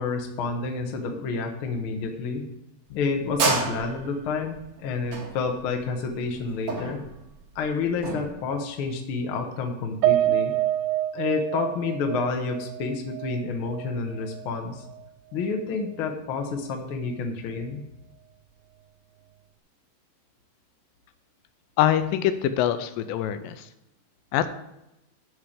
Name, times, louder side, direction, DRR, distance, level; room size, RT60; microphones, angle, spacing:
voice 1, 0.0-2.4 2.9-7.0 7.5-10.5 11.1-14.8 15.3-17.8, left 4 dB, 65° left, 3 dB, 1.3 m, -29 dB
sound 1, 2.9-8.3, right 4 dB, 50° right, 1.8 m, -30 dB
Piano, 10.0-14.5 14.9-15.0 15.4-15.6, right 14 dB, 90° right, 2.3 m, -27 dB
voice 2, 21.8-23.7 24.3-24.5, left 11 dB, 85° left, 11 dB, 2.3 m, -24 dB
13.0 x 4.6 x 5.0 m, 0.89 s
omnidirectional pair, 4.0 m